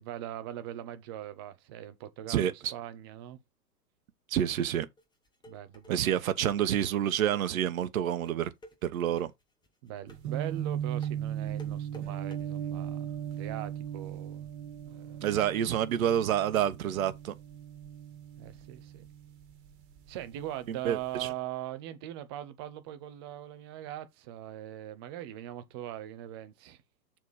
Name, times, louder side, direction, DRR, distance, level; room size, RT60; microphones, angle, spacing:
voice 1, 0.0-3.4 5.5-6.1 9.8-14.5 14.8-15.3 18.4-19.1 20.1-26.8, right 12 dB, 15° right, 0.5 m, -41 dB
voice 2, 2.3-2.7 4.3-4.9 5.9-8.5 8.8-9.3 15.2-17.3 20.7-21.3, right 10 dB, 55° right, 1.1 m, -28 dB
sound 1, 5.0-12.4, equal, 10° left, 1.9 m, -54 dB
sound 2, 10.1-20.1 20.4-21.2, right 10 dB, 40° right, 2.0 m, -38 dB
6.9 x 4.2 x 4.8 m
hypercardioid pair, 120°, 50 cm